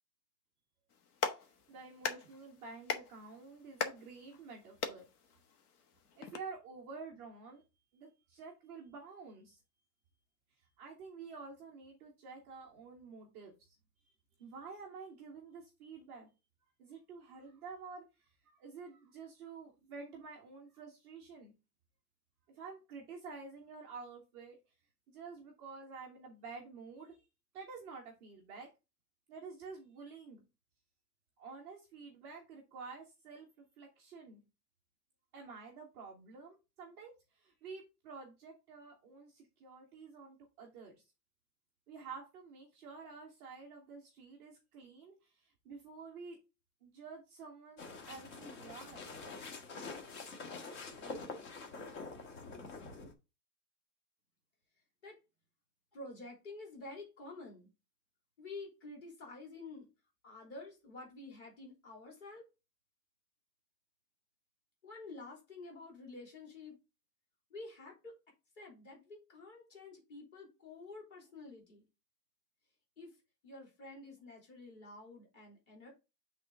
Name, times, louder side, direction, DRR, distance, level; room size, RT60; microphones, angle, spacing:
Clapping, 0.9-6.4, left 6 dB, 70° left, 1.3 m, -42 dB
voice 1, 1.7-5.0 6.2-7.6 7.9-9.6 10.8-13.7 14.4-16.3 16.8-21.5 22.5-24.6 25.1-27.3 27.5-28.7 29.3-30.4 31.4-34.4 35.3-41.0 41.9-46.4 46.8-49.1, right 4 dB, 5° right, -7 dB, 0.4 m, -50 dB
sound 1, 47.8-53.1, left 3 dB, 50° left, 1.6 m, -46 dB
voice 2, 55.9-57.7 58.4-59.9 60.2-62.4 64.8-66.8 67.5-68.1 68.6-71.9 73.0-73.2 73.4-75.9, left 3 dB, 30° left, -1 dB, 3.2 m, -49 dB
8.2 x 3.7 x 3.7 m, 0.27 s
supercardioid pair, 165°, 48 cm